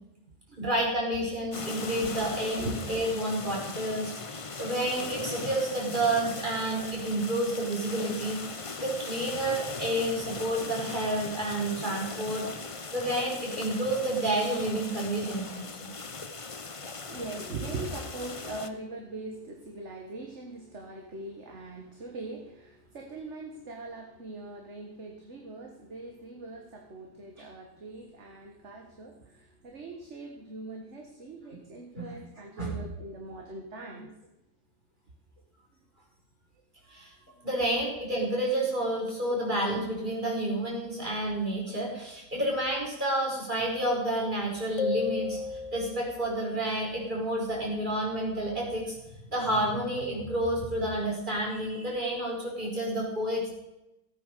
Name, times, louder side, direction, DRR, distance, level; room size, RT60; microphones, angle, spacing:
voice 1, 0.6-8.4 8.8-12.5 12.9-15.9 31.9-32.1 32.6-32.7 36.9-37.1 37.4-45.4 45.7-49.0 49.3-53.5, right 1 dB, 35° right, -2 dB, 4.9 m, -30 dB
sound 1, 1.5-18.7, left 4 dB, 30° left, 0.8 m, -39 dB
voice 2, 16.9-34.1, right 2 dB, 55° right, 2 dB, 1.9 m, -41 dB
sound 2, 44.8-46.3, left 5 dB, 65° left, 1.1 m, -32 dB
15.5 x 8.9 x 6.6 m, 0.91 s
omnidirectional pair, 1.4 m